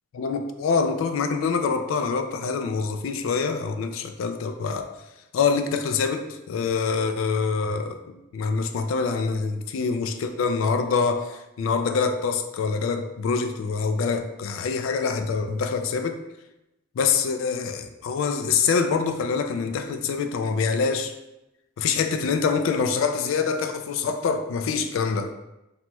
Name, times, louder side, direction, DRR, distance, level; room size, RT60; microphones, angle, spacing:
voice 1, 0.2-4.9 5.3-16.2 17.0-21.1 21.8-25.3, left 5 dB, 80° left, 6 dB, 0.3 m, -25 dB
3.0 x 2.9 x 2.2 m, 0.94 s
head